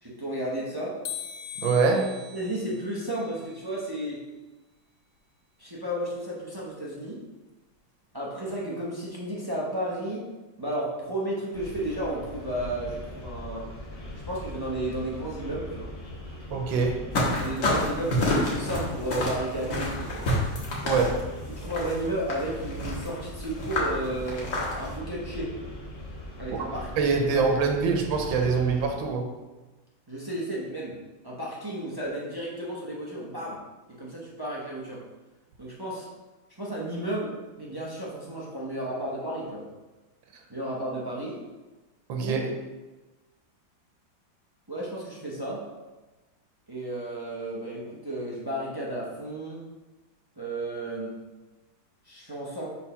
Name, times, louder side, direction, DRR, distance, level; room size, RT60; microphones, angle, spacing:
voice 1, 0.0-1.0 2.3-4.3 5.6-7.2 8.1-10.3 10.6-13.7 14.3-15.9 17.4-20.3 21.6-24.5 24.8-25.6 26.4-27.4 30.1-31.0 31.2-33.6 33.9-35.1 35.6-36.1 36.6-39.7 40.5-41.4 42.2-42.5 44.7-45.6 46.7-49.6 50.4-51.2 52.0-52.7, right 1 dB, 30° right, -5 dB, 0.4 m, -33 dB
sound 1, 1.1-4.1, left 7 dB, 80° left, 1.3 m, -41 dB
voice 2, 1.6-2.1 16.5-17.0 20.8-21.2 26.5-26.7 27.0-29.3 42.1-42.4, right 4 dB, 90° right, 3 dB, 1.5 m, -24 dB
sound 2, 11.5-28.9, left 1 dB, 30° left, 0.7 m, -41 dB
sound 3, 17.1-25.0, left 1 dB, 65° left, 1.9 m, -29 dB
4.5 x 4.1 x 5.5 m, 1.1 s
omnidirectional pair, 2.1 m